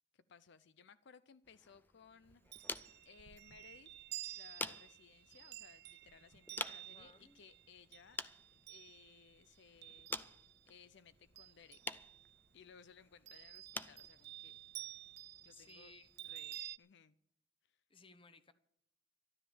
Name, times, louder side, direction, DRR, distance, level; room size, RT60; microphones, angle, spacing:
voice 1, 0.1-2.8 3.0-3.9 4.3-8.2 8.5-12.0 12.5-14.6 15.4-15.9 16.2-17.1 17.6-17.8, left 6 dB, 65° left, 0.5 m, -62 dB
sound 1, 1.4-16.5, left 2 dB, 10° left, 0.5 m, -50 dB
Chime, 2.3-10.7 11.1-12.5 13.3-16.8, right 14 dB, 60° right, 0.5 m, -52 dB
voice 2, 6.7-7.4 15.5-16.1 17.9-18.5, left 4 dB, 30° left, 1.0 m, -61 dB
13.0 x 12.0 x 7.1 m
head